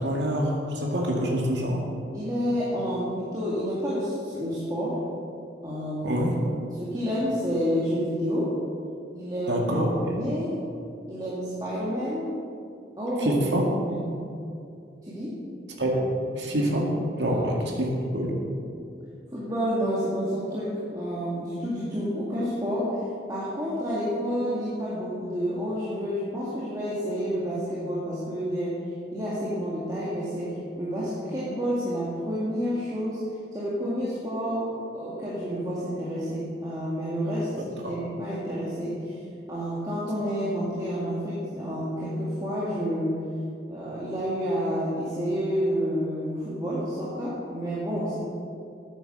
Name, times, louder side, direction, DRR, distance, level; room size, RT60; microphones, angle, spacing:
voice 1, 0.0-1.8 6.0-6.3 9.5-10.1 13.2-13.7 15.8-16.0 16.3-16.9 17.2-18.3 37.6-37.9, equal, 70° right, -1 dB, 1.9 m, -26 dB
voice 2, 2.1-5.0 5.6-6.2 6.7-8.6 9.1-10.6 11.1-12.3 12.9-14.2 15.0-15.4 16.6-16.8 17.3-17.4 18.7-18.8 19.3-23.0 23.3-28.8 29.1-33.2 33.5-39.2 39.5-43.2 43.7-48.2, equal, 20° right, -8 dB, 2.0 m, -29 dB
9.5 x 8.9 x 6.6 m, 2.5 s
head